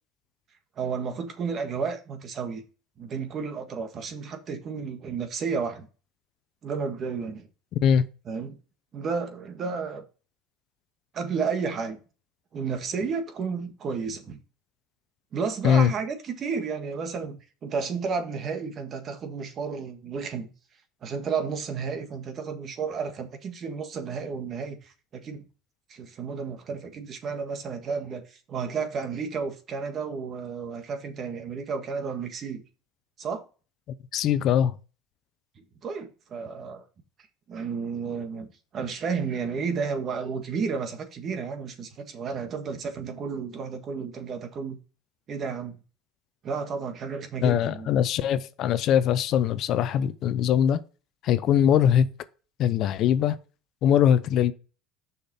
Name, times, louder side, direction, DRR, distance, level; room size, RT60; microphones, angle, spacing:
voice 1, 0.8-2.6 3.0-5.9 6.6-7.5 8.3-8.6 8.9-10.0 11.1-12.0 12.5-14.4 15.3-20.5 21.0-25.4 25.9-32.6 33.2-33.4 35.8-36.8 37.5-38.5 38.7-44.8 45.3-45.8 46.4-47.9, right 5 dB, 35° right, 1.6 m, -32 dB
voice 2, 34.1-34.8 47.4-50.8 51.2-52.1 52.6-53.4 53.8-54.5, left 9 dB, 50° left, 0.6 m, -21 dB
6.7 x 5.8 x 4.2 m
supercardioid pair, 130°, 0 cm